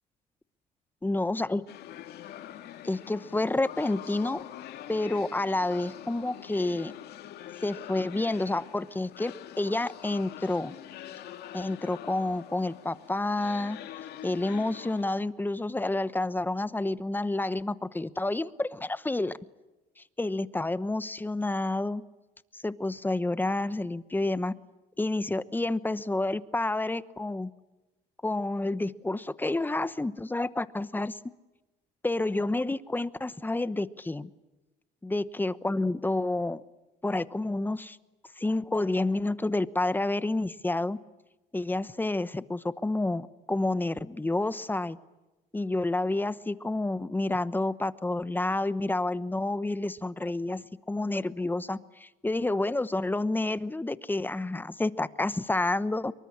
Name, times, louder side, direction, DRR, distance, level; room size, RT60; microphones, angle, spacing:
voice 1, 1.0-1.6 2.8-4.4 4.9-6.9 7.6-10.7 11.5-13.8 14.2-19.3 20.0-22.0 22.5-24.5 25.0-27.5 28.2-31.2 32.0-34.3 35.0-36.6 37.0-38.0 38.4-41.0 41.5-45.0 45.5-50.6 50.9-56.1, left 2 dB, 10° left, 15 dB, 1.0 m, -29 dB
sound 1, 1.7-15.0, left 12 dB, 75° left, 2.3 m, -44 dB
26.0 x 23.5 x 8.7 m, 1.1 s
cardioid pair, 110°, 17 cm